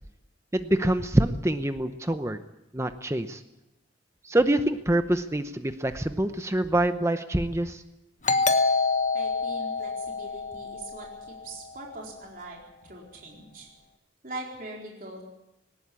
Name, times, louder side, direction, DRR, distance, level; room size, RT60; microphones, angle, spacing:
voice 1, 0.5-2.4 2.7-3.4 4.2-7.8, right 1 dB, 15° right, 9 dB, 0.8 m, -25 dB
Doorbell, 8.2-11.6, left 3 dB, 35° left, 1.2 m, -27 dB
voice 2, 9.1-13.7 14.2-15.2, right 2 dB, 45° right, -2 dB, 4.3 m, -42 dB
19.0 x 19.0 x 8.4 m, 0.89 s
head